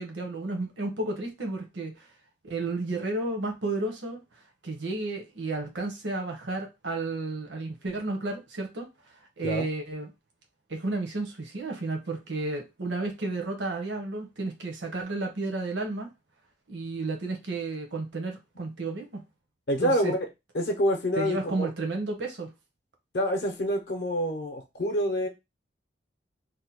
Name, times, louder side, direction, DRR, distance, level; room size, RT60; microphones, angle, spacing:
voice 1, 0.0-2.1 2.4-4.2 4.6-8.9 9.4-10.1 10.7-16.1 16.7-19.2 19.8-20.1 21.2-22.5, right 2 dB, 75° right, 0.8 m, -32 dB
voice 2, 19.7-20.2 20.5-21.7 23.1-25.3, equal, 60° left, 0.6 m, -27 dB
2.8 x 2.1 x 4.1 m
head